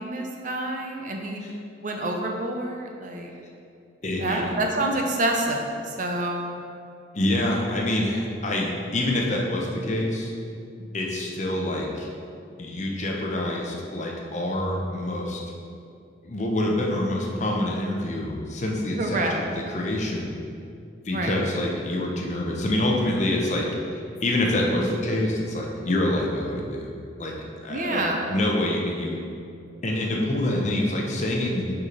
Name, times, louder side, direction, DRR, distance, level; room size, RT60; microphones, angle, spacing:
voice 1, 0.0-1.4 1.8-3.3 4.2-6.6 19.0-19.4 21.1-21.4 27.7-28.2, right 1 dB, 40° right, 2 dB, 0.6 m, -27 dB
voice 2, 4.0-4.5 7.1-10.3 10.9-12.1 12.6-15.4 16.2-20.3 21.0-26.9 27.2-27.3 27.6-29.2 29.8-31.7, left 1 dB, 35° left, -1 dB, 0.8 m, -26 dB
6.1 x 5.9 x 4.0 m, 2.5 s
head